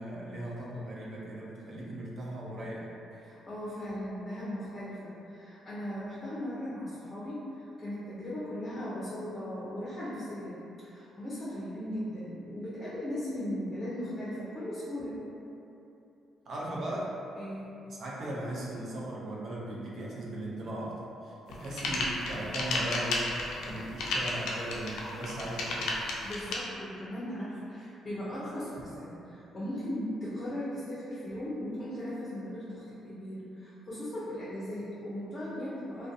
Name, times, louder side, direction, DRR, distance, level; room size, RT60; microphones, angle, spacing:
voice 1, 0.0-3.0 16.5-17.1 17.9-23.3 23.6-26.0, right 1 dB, 55° right, -6 dB, 0.5 m, -38 dB
voice 2, 3.1-15.2 17.4-17.7 26.2-36.1, equal, 30° left, -9 dB, 0.6 m, -38 dB
sound 1, 21.5-26.6, left 2 dB, 80° left, 0.3 m, -32 dB
2.4 x 2.2 x 2.6 m, 2.9 s
cardioid pair, 90°, 0 cm